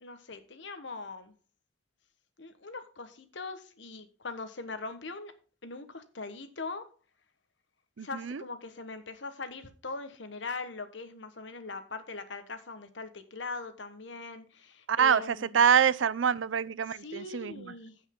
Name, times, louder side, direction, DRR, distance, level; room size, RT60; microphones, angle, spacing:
voice 1, 0.0-1.3 2.4-5.3 5.6-6.9 8.0-15.6 16.9-18.0, left 3 dB, 70° left, 1.3 m, -41 dB
voice 2, 8.0-8.4 14.9-17.7, right 7 dB, 90° right, 0.5 m, -26 dB
15.5 x 5.5 x 3.7 m
head